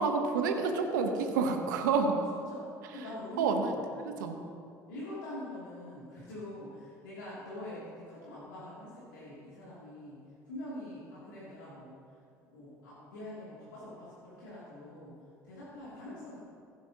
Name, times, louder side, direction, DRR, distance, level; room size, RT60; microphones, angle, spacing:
voice 1, 0.0-2.2 3.4-3.7 4.2-4.4, right 4 dB, 80° right, 5 dB, 1.0 m, -28 dB
voice 2, 2.3-3.8 4.9-10.2 10.5-11.9 12.5-15.1 15.4-16.4, left 1 dB, 80° left, -9 dB, 2.7 m, -44 dB
15.5 x 9.6 x 2.9 m, 2.4 s
hypercardioid pair, 60°, 10 cm